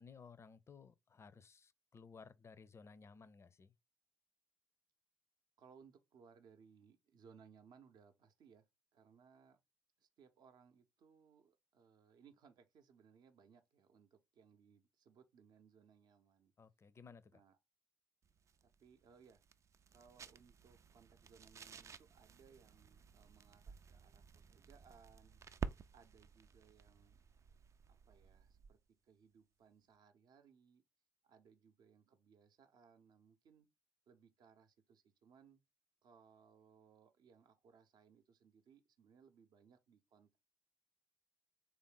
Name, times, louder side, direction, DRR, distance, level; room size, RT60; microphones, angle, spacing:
voice 1, 0.0-3.7 16.6-17.4, left 5 dB, 35° left, 0.5 m, -58 dB
voice 2, 5.6-8.6 8.9-9.6 10.0-16.5 17.3-17.6 18.6-19.4 19.9-25.4 25.9-27.2 27.9-30.8 31.2-33.7 34.1-35.6 36.0-40.4, right 6 dB, 60° right, 0.7 m, -66 dB
sound 1, 18.2-28.9, right 6 dB, 40° right, 0.4 m, -52 dB
3.4 x 2.5 x 3.8 m
hypercardioid pair, 45°, 8 cm